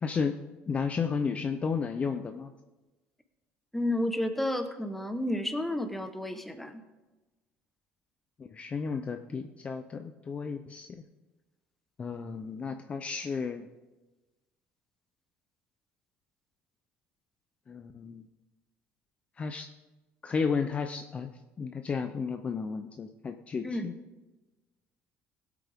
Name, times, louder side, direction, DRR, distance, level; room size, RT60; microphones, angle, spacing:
voice 1, 0.0-0.3 0.7-2.5 8.4-10.9 12.0-13.7 17.7-18.3 19.4-19.7 20.2-21.3 21.6-23.9, left 5 dB, 30° left, 7 dB, 0.6 m, -33 dB
voice 2, 3.7-6.8 23.6-23.9, left 1 dB, 5° left, 7 dB, 1.0 m, -31 dB
17.5 x 8.4 x 3.6 m, 1.1 s
cardioid pair, 120°, 4 cm